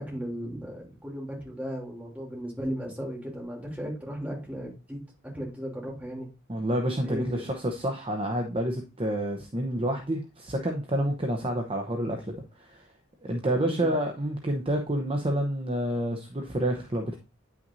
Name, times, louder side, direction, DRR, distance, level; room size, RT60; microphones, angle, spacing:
voice 1, 0.0-5.0 5.3-6.3 7.0-7.5 13.4-13.7, equal, 5° right, -3 dB, 3.1 m, -36 dB
voice 2, 6.5-12.8 13.2-17.2, right 1 dB, 25° right, 3 dB, 0.8 m, -29 dB
9.4 x 5.9 x 2.7 m, 0.32 s
head